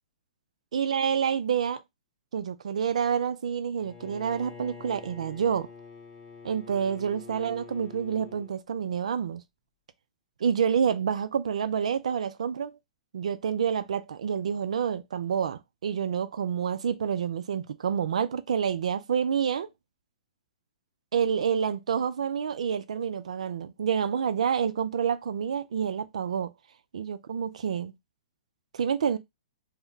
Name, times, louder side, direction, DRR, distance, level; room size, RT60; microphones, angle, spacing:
voice 1, 0.7-1.8 2.3-5.7 6.4-9.4 10.4-12.7 13.1-19.7 21.1-26.5 26.9-27.9 28.7-29.2, right 7 dB, 70° right, 0.3 m, -28 dB
Bowed string instrument, 3.8-8.6, left 5 dB, 25° left, 1.0 m, -47 dB
2.1 x 2.0 x 3.6 m
figure-of-eight pair, 115°, 4 cm